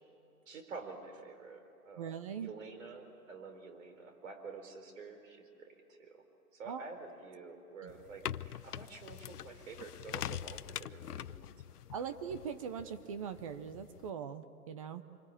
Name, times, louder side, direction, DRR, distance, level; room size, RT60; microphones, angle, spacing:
voice 1, 0.5-6.2 6.5-11.4, right 4 dB, 55° right, 7 dB, 4.6 m, -49 dB
voice 2, 2.0-2.5 6.7-6.8 7.8-7.9 11.9-15.0, right 7 dB, 25° right, 11 dB, 0.7 m, -41 dB
sound 1, 7.9-14.1, left 10 dB, 75° left, 0.7 m, -44 dB
27.0 x 24.5 x 9.0 m, 2.9 s
hypercardioid pair, 145°, 46 cm